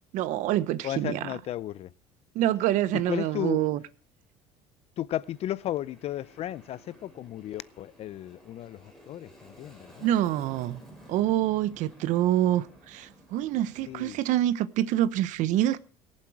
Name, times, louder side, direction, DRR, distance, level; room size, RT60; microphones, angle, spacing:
voice 1, 0.1-1.2 2.3-3.8 10.0-10.8 11.1-15.8, right 13 dB, 65° right, 0.9 m, -26 dB
voice 2, 0.8-1.9 2.9-3.6 5.0-10.1 13.8-14.2, left 12 dB, 50° left, 0.5 m, -34 dB
Aircraft, 5.2-14.0, equal, 5° left, 5.6 m, -53 dB
22.0 x 7.5 x 4.7 m
cardioid pair, 120°, 14 cm